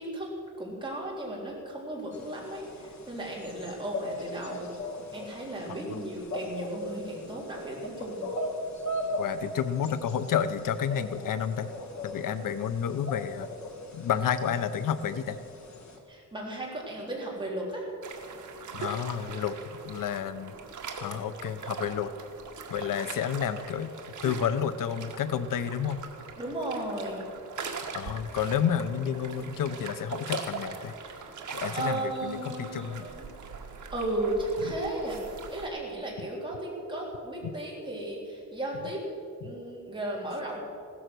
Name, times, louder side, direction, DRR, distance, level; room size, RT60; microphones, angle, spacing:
voice 1, 0.0-4.7 5.1-8.2 16.1-17.9 26.4-27.3 31.2-33.3 33.9-35.2 35.5-39.0 39.4-40.6, right 1 dB, 15° right, -4 dB, 3.6 m, -35 dB
sound 1, 2.1-16.0, left 1 dB, 60° left, 1.8 m, -39 dB
voice 2, 9.2-11.7 12.0-13.5 13.9-15.4 18.7-19.6 19.8-20.5 21.0-22.1 22.7-23.9 24.2-26.0 27.9-30.9 31.5-33.1 34.6-34.7 37.4-37.5, left 8 dB, 85° left, 13 dB, 0.7 m, -30 dB
sound 2, 18.0-35.7, right 5 dB, 70° right, 1.8 m, -41 dB
16.0 x 13.5 x 6.2 m, 2.5 s
wide cardioid pair, 165°, 32 cm